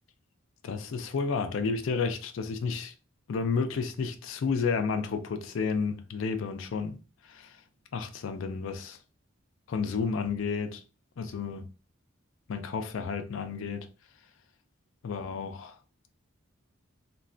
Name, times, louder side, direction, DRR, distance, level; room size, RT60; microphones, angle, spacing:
voice 1, 0.6-2.9 3.3-7.6 7.9-9.0 9.7-10.8 11.2-11.7 12.5-13.9 15.0-15.8, left 5 dB, 65° left, 0.4 m, -31 dB
3.1 x 2.2 x 2.5 m
head